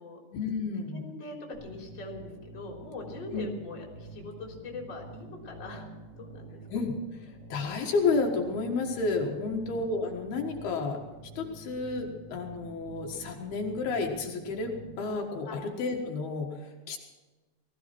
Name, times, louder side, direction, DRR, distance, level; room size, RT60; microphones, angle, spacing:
voice 1, 0.3-1.0 3.3-3.5 6.7-6.9 7.5-11.0 11.4-17.0, left 4 dB, 80° left, 1 dB, 3.5 m, -31 dB
voice 2, 0.9-1.4 1.6-5.9 6.2-6.6 9.4-9.7 15.4-15.6, left 3 dB, 30° left, -1 dB, 3.9 m, -42 dB
sound 1, 1.5-15.1, right 3 dB, 60° right, 5.8 m, -48 dB
20.0 x 15.0 x 4.5 m, 1.2 s
omnidirectional pair, 4.4 m